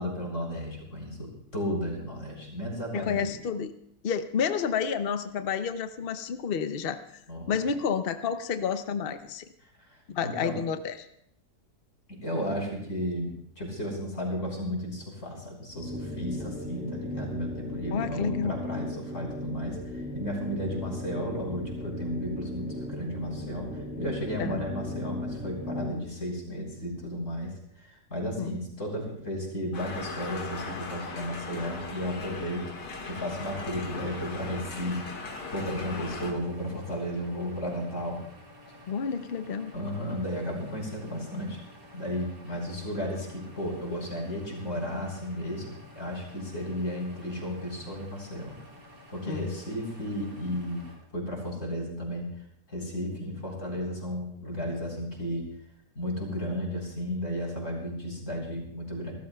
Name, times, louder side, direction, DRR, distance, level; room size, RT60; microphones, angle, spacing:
voice 1, 0.0-3.3 7.3-7.5 10.2-10.6 12.1-13.3 13.6-23.7 24.0-38.2 39.7-41.6 41.9-48.5 49.1-50.8 51.1-52.3 52.7-55.5 55.9-59.1, equal, 45° left, -2 dB, 4.5 m, -34 dB
voice 2, 2.9-3.8 4.0-7.0 7.5-9.4 10.1-10.9 17.9-18.6 24.4-24.6 28.4-28.6 38.9-39.7 49.2-49.6, left 6 dB, 60° left, 9 dB, 0.6 m, -30 dB
sound 1, 15.7-26.1, left 1 dB, 5° right, 2.3 m, -36 dB
sound 2, 29.7-36.3, left 3 dB, 85° left, 2.4 m, -38 dB
sound 3, 33.8-51.0, left 1 dB, 70° right, 5.3 m, -52 dB
28.0 x 13.0 x 2.3 m, 0.71 s
omnidirectional pair, 1.8 m